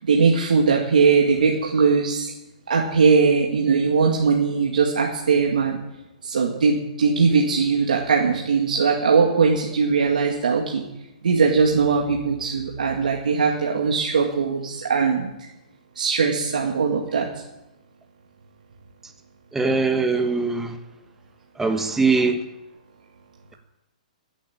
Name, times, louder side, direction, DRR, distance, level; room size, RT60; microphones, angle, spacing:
voice 1, 0.1-2.3 2.7-5.8 6.2-10.8 11.2-15.3 16.0-17.3, right 5 dB, 80° right, -1 dB, 2.3 m, -20 dB
voice 2, 19.5-20.7 21.6-22.4, right 4 dB, 5° right, 6 dB, 1.4 m, -21 dB
15.5 x 8.7 x 8.8 m, 0.93 s
hypercardioid pair, 135°, 4 cm